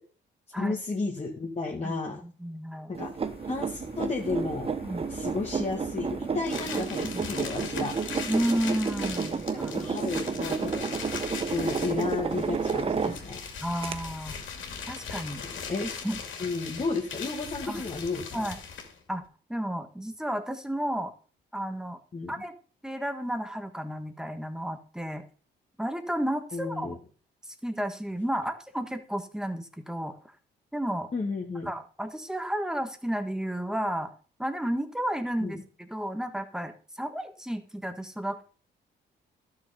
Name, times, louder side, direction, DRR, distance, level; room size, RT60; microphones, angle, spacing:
voice 1, 0.6-2.2 2.9-3.1 3.5-4.7 5.1-7.9 9.5-11.0 11.5-13.4 15.4-15.9 16.4-18.5 22.1-22.3 26.5-27.0 31.1-31.7 35.4-35.6, left 3 dB, 35° left, -1 dB, 2.0 m, -32 dB
voice 2, 2.4-2.9 4.8-5.0 7.0-7.2 8.3-9.9 10.3-10.4 13.0-13.1 13.6-14.4 14.9-15.4 15.8-16.2 17.7-17.8 18.3-18.6 19.1-19.2 19.5-21.1 21.5-22.0 22.3-22.5 22.8-25.2 25.8-26.9 27.5-30.2 30.7-31.1 31.6-34.1 34.4-35.6 35.9-38.5, right 1 dB, 5° right, 8 dB, 1.5 m, -32 dB
sound 1, 2.9-13.4 13.8-13.9, right 5 dB, 30° right, 0.9 m, -31 dB
sound 2, 3.2-16.2, left 3 dB, 55° left, 2.7 m, -47 dB
sound 3, 6.4-19.0, left 6 dB, 70° left, 2.6 m, -40 dB
12.0 x 6.6 x 5.2 m, 0.39 s
cardioid pair, 90°, 20 cm